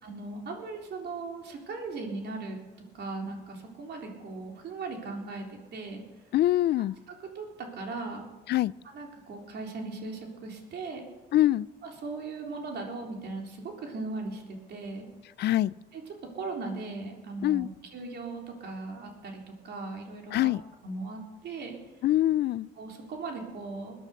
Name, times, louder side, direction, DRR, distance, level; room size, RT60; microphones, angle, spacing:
voice 1, 0.0-2.6 2.9-6.0 7.1-8.3 8.8-11.0 11.8-15.1 15.9-16.0 16.3-17.7 17.9-20.5 20.8-21.8 22.8-23.9, right 3 dB, 60° right, 1 dB, 3.7 m, -38 dB
voice 2, 6.3-6.9 8.5-8.7 11.3-11.7 15.4-15.7 17.4-17.7 20.3-20.6 22.0-22.7, left 14 dB, 60° left, 20 dB, 0.4 m, -24 dB
21.5 x 9.8 x 6.6 m, 1.2 s
cardioid pair, 95°, 19 cm